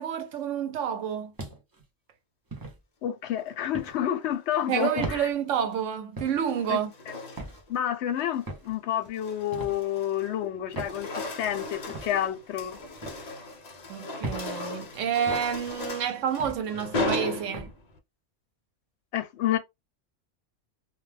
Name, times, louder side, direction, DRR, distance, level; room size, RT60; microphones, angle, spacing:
voice 1, 0.0-1.3 4.7-6.9 13.9-17.7, right 8 dB, 85° right, 1.0 m, -29 dB
sound 1, 1.4-1.8 2.5-2.8 3.7-4.0 5.0-5.2 6.2-6.4 7.4-7.6 8.5-8.7 9.5-9.8 10.7-11.0 11.9-12.1 13.0-13.2 14.2-14.5 15.3-15.5 16.4-16.7 17.5-17.7, right 2 dB, 25° right, 0.5 m, -37 dB
voice 2, 3.0-5.3 6.7-6.8 7.7-12.8 19.1-19.6, left 11 dB, 70° left, 0.8 m, -29 dB
sound 2, 4.6-5.1 6.2-7.8 8.2-8.5 9.0-10.4 10.7-18.0, left 2 dB, 45° left, 0.6 m, -36 dB
2.2 x 2.2 x 3.2 m
omnidirectional pair, 1.3 m